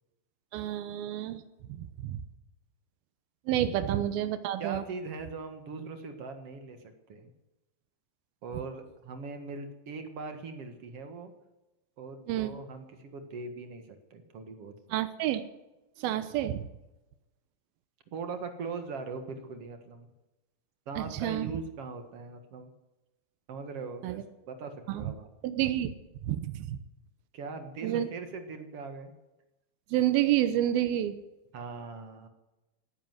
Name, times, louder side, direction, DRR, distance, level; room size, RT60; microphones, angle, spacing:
voice 1, 0.5-1.4 1.7-2.2 3.5-4.8 12.3-12.5 14.9-15.4 16.0-16.7 21.0-21.5 24.0-24.2 24.9-25.1 25.4-25.9 26.2-26.8 27.8-28.1 29.9-31.2, right 12 dB, 85° right, 12 dB, 2.8 m, -29 dB
voice 2, 4.6-7.3 8.4-11.3 12.0-14.7 18.1-20.1 20.9-22.7 23.5-25.3 27.3-29.1 31.5-32.3, right 4 dB, 50° right, 7 dB, 2.1 m, -40 dB
18.0 x 10.0 x 7.9 m, 1.0 s
omnidirectional pair, 4.2 m